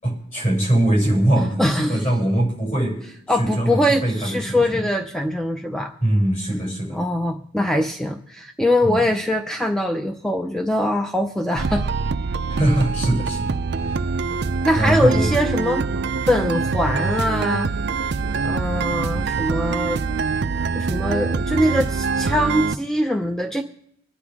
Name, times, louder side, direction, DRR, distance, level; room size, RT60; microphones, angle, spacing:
voice 1, 0.0-3.0 3.3-4.8 6.0-7.0 8.8-9.0 12.5-14.1 14.7-15.3, right 1 dB, 40° left, -3 dB, 6.7 m, -22 dB
voice 2, 1.6-2.0 3.3-5.9 6.9-11.8 14.6-15.9 16.3-17.7 18.4-20.0 20.7-23.6, left 1 dB, 5° left, 3 dB, 0.7 m, -22 dB
sound 1, 11.6-22.8, right 4 dB, 55° right, 0.5 m, -24 dB
25.0 x 9.9 x 3.6 m, 0.72 s
head